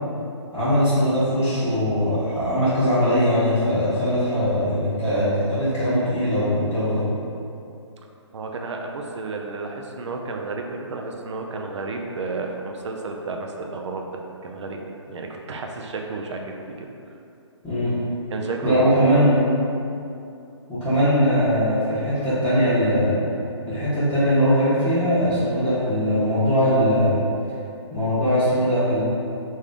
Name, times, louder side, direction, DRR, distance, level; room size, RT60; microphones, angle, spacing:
voice 1, 0.5-7.0 17.6-18.0 18.6-19.4 20.7-23.2 23.7-27.1 27.9-29.0, equal, 10° left, -17 dB, 1.0 m, -20 dB
voice 2, 8.3-14.0 14.4-14.8 15.1-16.9 18.3-18.9, right 3 dB, 70° right, 2 dB, 0.5 m, -31 dB
3.4 x 2.7 x 3.5 m, 2.7 s
hypercardioid pair, 145°, 16 cm